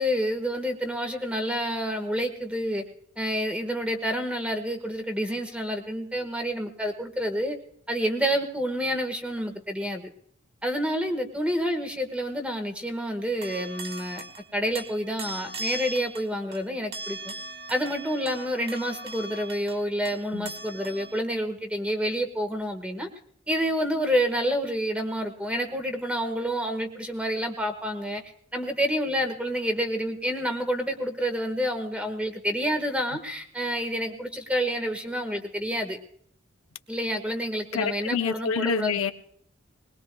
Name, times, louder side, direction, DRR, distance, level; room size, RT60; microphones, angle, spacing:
voice 1, 0.0-2.8 3.2-7.6 7.9-10.1 10.6-14.2 14.5-17.3 17.7-23.1 23.5-28.2 28.5-36.0 36.9-39.0, equal, 5° right, 6 dB, 1.4 m, -28 dB
sound 1, 13.2-14.5 14.7-21.2, right 2 dB, 50° right, 1.4 m, -39 dB
voice 2, 37.7-39.1, left 6 dB, 75° left, 7 dB, 0.7 m, -27 dB
21.0 x 20.5 x 2.2 m, 0.63 s
head